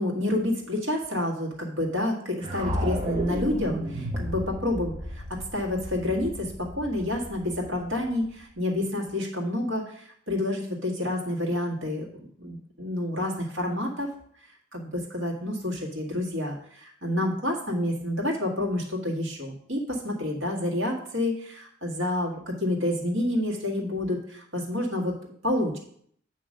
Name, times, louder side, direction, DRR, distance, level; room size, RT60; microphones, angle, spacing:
voice 1, 0.0-14.1 14.4-25.8, left 1 dB, 70° right, -1 dB, 1.8 m, -29 dB
sound 1, 2.4-8.5, equal, 25° right, 0.9 m, -33 dB
8.7 x 3.0 x 6.4 m, 0.65 s
head